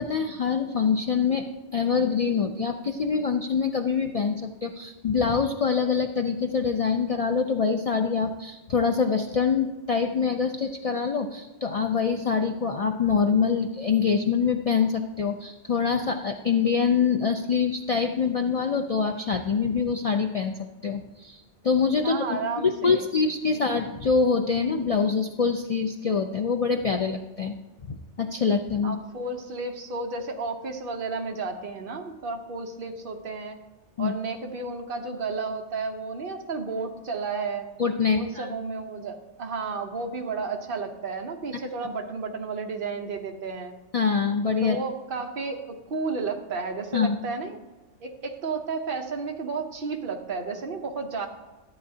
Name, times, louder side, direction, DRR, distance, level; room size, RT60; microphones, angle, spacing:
voice 1, 0.0-27.5 27.8-29.0 34.0-34.1 37.8-38.5 43.9-44.8 46.9-47.1, left 5 dB, 65° left, 4 dB, 0.3 m, -25 dB
voice 2, 22.0-23.1 23.5-23.6 28.8-33.6 34.0-37.7 38.1-43.7 44.6-47.6 48.0-51.3, right 4 dB, 50° right, 3 dB, 1.0 m, -32 dB
13.5 x 8.6 x 2.8 m, 1.1 s
omnidirectional pair, 1.3 m